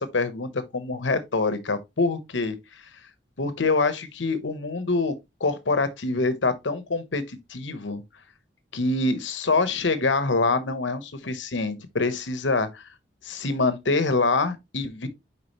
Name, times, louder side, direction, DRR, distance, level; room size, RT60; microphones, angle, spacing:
voice 1, 0.0-2.6 3.4-5.1 5.4-8.0 8.7-12.8 13.2-15.1, left 3 dB, 85° left, 1.0 m, -25 dB
6.6 x 4.8 x 3.0 m
head